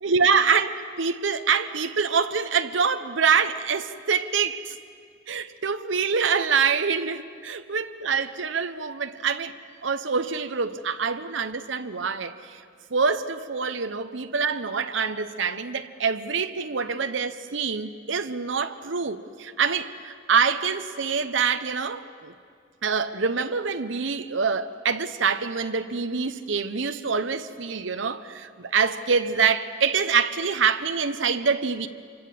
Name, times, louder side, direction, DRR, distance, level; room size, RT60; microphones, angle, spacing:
voice 1, 0.0-4.8 5.3-9.5 9.8-12.6 12.9-22.3 22.8-31.9, right 5 dB, 70° right, 0.9 m, -25 dB
26.5 x 25.0 x 7.7 m
head